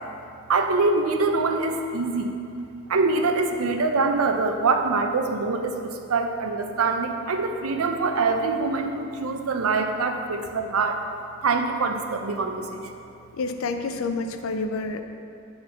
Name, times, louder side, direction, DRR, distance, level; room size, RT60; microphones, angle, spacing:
voice 1, 0.5-2.3 2.9-11.0 11.4-12.9, right 3 dB, 85° right, 5 dB, 0.6 m, -24 dB
voice 2, 13.4-15.0, left 3 dB, 70° left, 7 dB, 0.5 m, -28 dB
7.7 x 3.9 x 5.7 m, 2.8 s
head